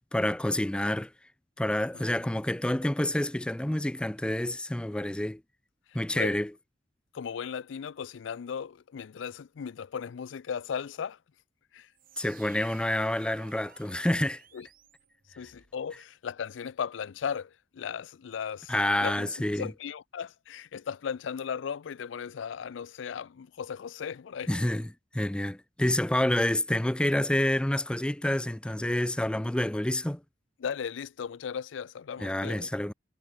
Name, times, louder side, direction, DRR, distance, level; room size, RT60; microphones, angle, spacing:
voice 1, 0.1-1.1 1.6-5.4 5.9-6.5 12.2-14.4 18.7-19.7 24.5-24.9 25.1-30.2 32.2-32.9, left 1 dB, 5° left, 0.4 m, -28 dB
voice 2, 7.1-11.2 11.7-11.9 14.5-14.7 15.4-18.7 19.0-24.5 30.6-32.7, left 7 dB, 80° left, 0.4 m, -36 dB
sound 1, 11.9-15.7, right 8 dB, 50° right, 1.6 m, -56 dB
head